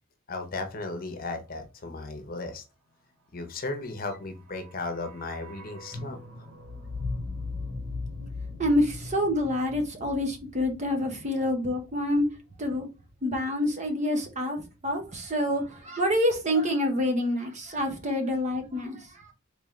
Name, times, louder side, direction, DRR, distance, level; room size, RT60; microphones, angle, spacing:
voice 1, 0.3-2.6 3.3-6.2, left 3 dB, 45° left, 0.8 m, -35 dB
sound 1, 4.2-12.3 12.6-12.7, left 3 dB, 75° right, 2.4 m, -39 dB
voice 2, 8.6-12.3 12.6-12.9 13.2-19.0, left 1 dB, 35° right, 0.9 m, -27 dB
3.7 x 3.4 x 3.1 m
head